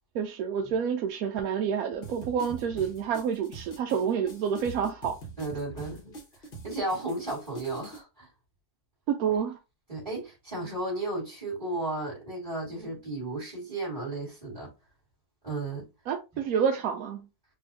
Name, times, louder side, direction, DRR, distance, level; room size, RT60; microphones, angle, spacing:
voice 1, 0.1-5.2 9.1-9.6 16.1-17.3, right 7 dB, 70° right, 1.0 m, -28 dB
sound 1, 2.0-8.0, right 3 dB, 40° left, 1.1 m, -44 dB
voice 2, 5.4-6.1 6.6-8.3 9.9-14.7 15.4-15.9, right 2 dB, 20° right, 2.2 m, -34 dB
4.2 x 2.7 x 2.7 m
omnidirectional pair, 1.7 m